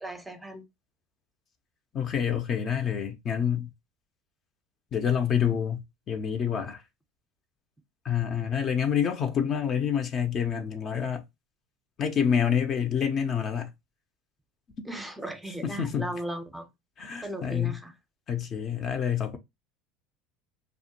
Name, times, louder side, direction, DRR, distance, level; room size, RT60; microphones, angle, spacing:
voice 1, 0.0-0.6 14.8-16.7 17.2-17.9, right 1 dB, 5° right, 0.6 m, -37 dB
voice 2, 1.9-3.7 4.9-6.8 8.0-11.2 12.0-13.7 15.6-16.1 17.0-17.8 18.3-19.4, left 8 dB, 45° left, 0.5 m, -27 dB
2.3 x 2.1 x 2.8 m
hypercardioid pair, 90°, 0 cm